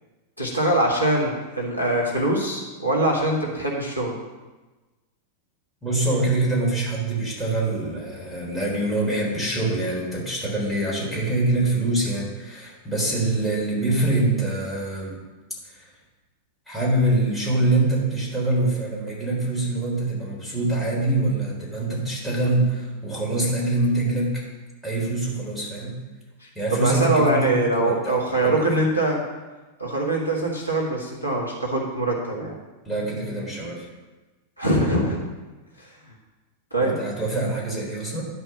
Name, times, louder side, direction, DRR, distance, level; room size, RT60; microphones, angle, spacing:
voice 1, 0.4-4.2 26.7-29.2 29.8-32.5 34.6-35.2 35.8-35.9 36.7-37.0, right 1 dB, 90° left, -3 dB, 1.8 m, -23 dB
voice 2, 5.8-15.2 15.6-15.9 16.7-24.4 24.8-26.0 26.6-28.9 32.9-33.9 36.8-38.3, right 2 dB, ahead, -5 dB, 3.6 m, -24 dB
11.5 x 4.5 x 6.9 m, 1.2 s
figure-of-eight pair, 90°, 0 cm